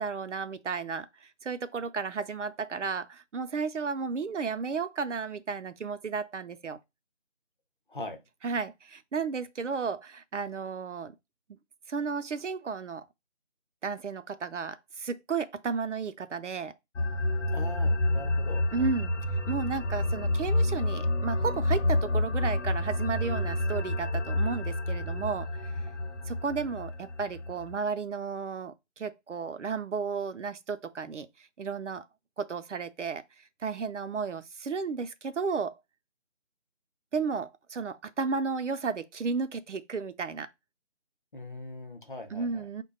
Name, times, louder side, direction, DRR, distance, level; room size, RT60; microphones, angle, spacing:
voice 1, 0.0-6.8 8.4-11.1 11.9-13.1 13.8-16.7 18.7-19.1 19.5-25.8 26.3-32.1 32.4-33.2 33.6-35.8 37.1-40.5 42.3-42.8, right 5 dB, 75° right, 0.6 m, -33 dB
voice 2, 7.9-8.2 17.5-18.9 41.3-42.7, left 2 dB, 40° left, 0.8 m, -41 dB
sound 1, 17.0-27.8, left 1 dB, 70° left, 0.6 m, -29 dB
4.8 x 2.2 x 4.8 m
figure-of-eight pair, 165°, 37 cm